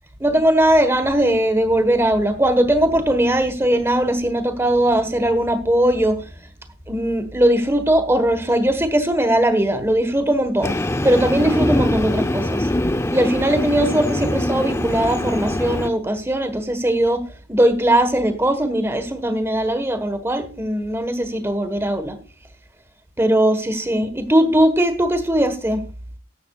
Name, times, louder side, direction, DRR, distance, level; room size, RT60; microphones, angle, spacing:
voice 1, 0.2-6.2 6.9-10.7 11.0-12.7 13.1-17.2 17.5-22.2 23.2-25.8, right 1 dB, 15° right, 1.4 m, -19 dB
Train, 10.6-15.9, left 1 dB, 15° left, 0.6 m, -23 dB
14.0 x 11.5 x 2.4 m
head